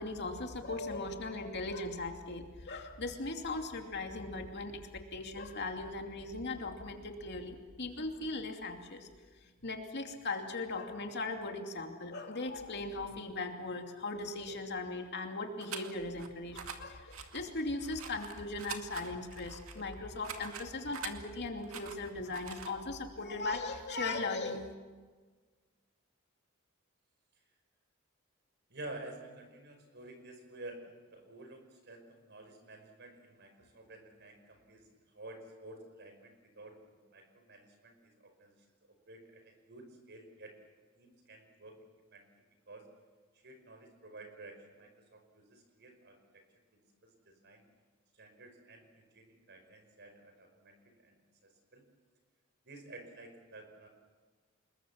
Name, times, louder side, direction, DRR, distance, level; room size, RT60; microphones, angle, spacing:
voice 1, 0.0-9.1 9.6-24.6, left 3 dB, 55° left, 4 dB, 2.7 m, -38 dB
sound 1, 15.6-16.3 16.5-16.8 17.1-21.1 21.6-22.7, right 7 dB, 85° right, 2.2 m, -45 dB
voice 2, 28.7-34.9 35.1-38.6 38.9-40.6 41.0-42.3 42.7-42.9 43.3-46.4 46.7-47.6 48.1-51.8 52.6-53.9, right 2 dB, 55° right, 6 dB, 5.3 m, -51 dB
27.0 x 21.5 x 7.3 m, 1.4 s
head